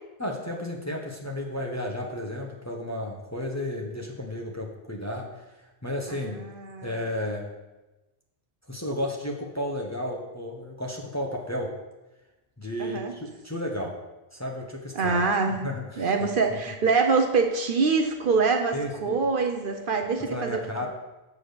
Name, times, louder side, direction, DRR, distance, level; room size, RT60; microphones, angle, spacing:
voice 1, 0.2-6.4 6.8-7.5 8.7-11.8 12.6-14.0 14.3-15.2 15.6-16.1 18.7-19.2 20.2-20.9, left 1 dB, 15° left, -1 dB, 0.9 m, -33 dB
voice 2, 6.1-7.0 12.8-13.1 14.9-15.7 16.0-20.9, right 4 dB, 60° right, 4 dB, 0.9 m, -25 dB
7.3 x 4.2 x 6.6 m, 1.1 s
omnidirectional pair, 1.1 m